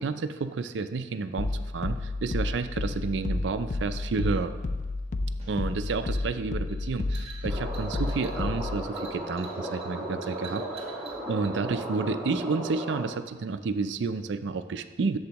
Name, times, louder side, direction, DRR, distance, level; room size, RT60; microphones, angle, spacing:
voice 1, 0.0-4.5 5.5-15.2, right 4 dB, 70° right, 10 dB, 0.4 m, -31 dB
sound 1, 1.4-8.9, left 2 dB, 40° left, 0.3 m, -31 dB
sound 2, 5.4-11.6, right 5 dB, 30° right, 1.3 m, -48 dB
sound 3, 7.5-13.1, right 1 dB, 5° right, 1.7 m, -36 dB
11.5 x 7.1 x 2.9 m, 1.3 s
head